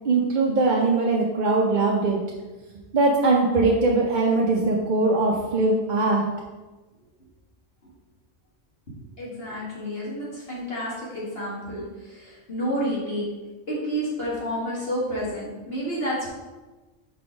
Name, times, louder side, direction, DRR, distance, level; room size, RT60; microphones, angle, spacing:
voice 1, 0.0-2.2 2.9-6.2, right 3 dB, 50° right, -1 dB, 0.7 m, -21 dB
voice 2, 9.2-13.2 13.7-16.3, equal, 55° left, -7 dB, 1.8 m, -30 dB
5.6 x 4.1 x 4.8 m, 1.2 s
omnidirectional pair, 1.2 m